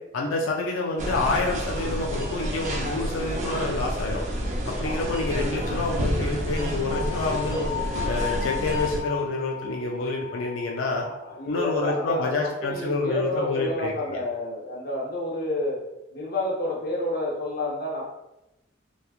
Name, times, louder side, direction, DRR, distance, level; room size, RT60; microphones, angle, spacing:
voice 1, 0.1-4.2 4.7-7.7 8.1-11.0 11.5-14.2, left 3 dB, 90° left, 0 dB, 0.4 m, -28 dB
sound 1, 1.0-9.0, equal, 40° right, 0.4 m, -29 dB
sound 2, 6.8-11.9, left 11 dB, 10° left, 0.7 m, -36 dB
voice 2, 11.0-15.8 16.1-18.0, left 1 dB, 50° left, -4 dB, 0.7 m, -29 dB
2.9 x 2.3 x 2.4 m, 0.93 s
head